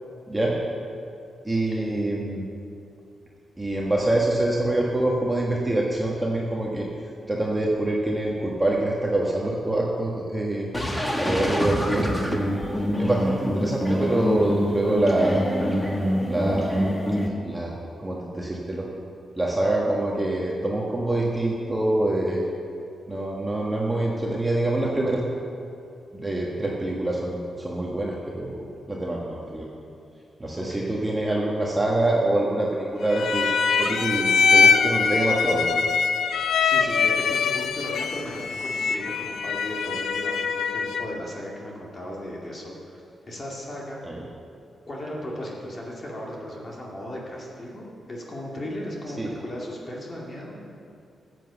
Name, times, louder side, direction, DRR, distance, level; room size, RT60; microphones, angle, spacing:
voice 1, 1.4-2.5 3.6-6.9 7.3-10.7 11.2-15.4 16.2-16.8 17.1-18.9 19.4-22.4 23.1-25.2 26.1-28.5 28.9-29.7 30.4-35.8 36.4-36.5 44.0-44.2 49.2-49.3, right 1 dB, 10° right, -3 dB, 1.4 m, -25 dB
sound 1, 10.7-17.3, equal, 10° left, 1.4 m, -25 dB
voice 2, 30.6-31.0 36.6-44.0 44.9-50.6, left 1 dB, 35° left, -3 dB, 2.3 m, -36 dB
sound 2, 33.1-41.2, left 5 dB, 85° left, 0.7 m, -23 dB
15.0 x 8.0 x 7.0 m, 2.5 s
wide cardioid pair, 135°, 0 cm